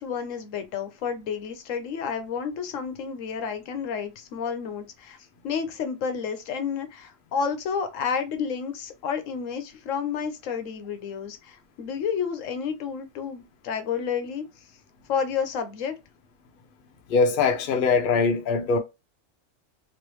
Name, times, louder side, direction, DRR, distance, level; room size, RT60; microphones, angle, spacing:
voice 1, 0.0-5.2 5.4-14.4 15.1-15.9, left 6 dB, 80° left, 1.0 m, -30 dB
voice 2, 17.1-18.8, left 4 dB, 50° left, 0.7 m, -22 dB
3.1 x 3.0 x 3.0 m
omnidirectional pair, 1.3 m